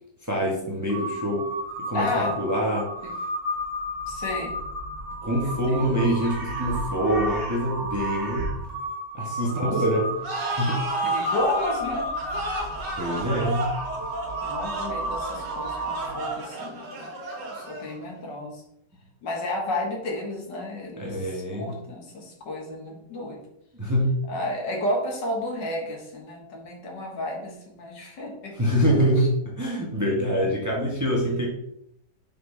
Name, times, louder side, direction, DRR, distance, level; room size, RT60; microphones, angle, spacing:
voice 1, 0.2-1.5 1.8-2.9 5.2-8.5 9.1-10.2 10.5-10.8 13.0-13.7 21.0-21.7 23.7-24.1 28.6-31.5, equal, 10° right, -2 dB, 1.0 m, -25 dB
Crow, 0.9-16.4, equal, 35° right, 1.6 m, -32 dB
voice 2, 1.9-2.3 3.0-3.1 4.1-4.5 5.4-6.0 9.6-10.0 11.0-12.1 14.4-17.1 17.4-18.6 19.2-23.4 24.3-28.7 29.2-29.3, left 1 dB, 80° left, -1 dB, 2.1 m, -32 dB
sound 1, 10.2-18.1, right 2 dB, 85° right, 2.2 m, -32 dB
5.8 x 5.4 x 3.4 m, 0.76 s
omnidirectional pair, 1.9 m